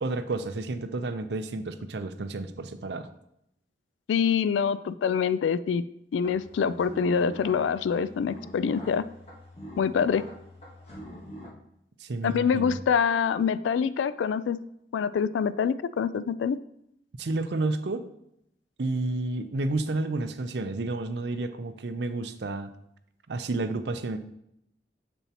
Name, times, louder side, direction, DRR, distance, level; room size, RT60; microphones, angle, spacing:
voice 1, 0.0-3.1 12.0-12.8 17.2-18.1 18.8-22.7 23.3-24.2, right 2 dB, 70° right, 10 dB, 0.6 m, -31 dB
voice 2, 4.1-5.8 6.1-9.0 9.8-10.2 12.2-14.6 14.9-16.6, left 6 dB, 90° left, 16 dB, 0.3 m, -25 dB
sound 1, 6.2-11.5, equal, 35° left, 1.5 m, -44 dB
7.0 x 6.9 x 2.9 m, 0.78 s
head